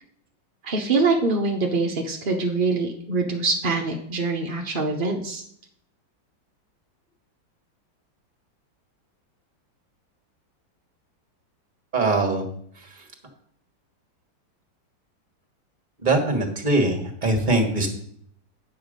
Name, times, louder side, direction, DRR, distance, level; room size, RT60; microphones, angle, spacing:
voice 1, 0.6-5.4, right 3 dB, 55° right, 1 dB, 0.6 m, -24 dB
voice 2, 11.9-12.4 16.0-17.9, right 2 dB, 25° right, 4 dB, 1.4 m, -22 dB
9.0 x 7.1 x 5.1 m, 0.67 s
omnidirectional pair, 2.1 m